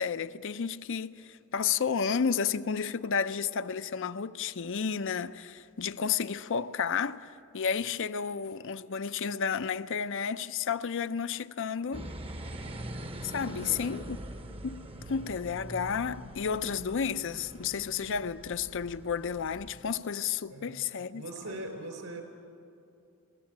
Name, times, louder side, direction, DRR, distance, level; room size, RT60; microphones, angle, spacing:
voice 1, 0.0-12.1 13.2-14.2 14.6-21.2, left 6 dB, 60° left, 0.5 m, -32 dB
sound 1, 11.9-20.0, right 1 dB, 25° right, 0.8 m, -43 dB
voice 2, 13.5-14.0 20.5-20.8 21.1-22.2, right 1 dB, 70° right, 4.1 m, -41 dB
22.0 x 16.5 x 8.8 m
head